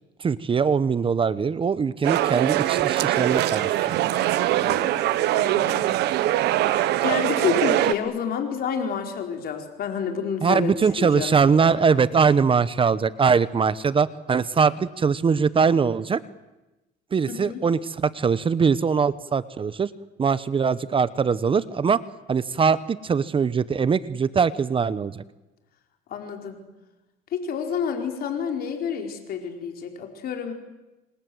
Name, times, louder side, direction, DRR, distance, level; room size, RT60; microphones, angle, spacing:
voice 1, 0.2-4.0 10.4-16.2 17.1-19.9 20.2-22.0 22.3-25.2, right 5 dB, 30° right, 16 dB, 1.0 m, -22 dB
sound 1, 2.0-7.9, right 14 dB, 85° right, 1.5 m, -22 dB
voice 2, 5.3-5.9 7.0-10.7 11.0-11.4 17.3-17.6 26.1-26.6 27.3-30.5, left 7 dB, 65° left, 4 dB, 4.6 m, -29 dB
28.0 x 26.5 x 7.9 m, 1.0 s
cardioid pair, 110°, 17 cm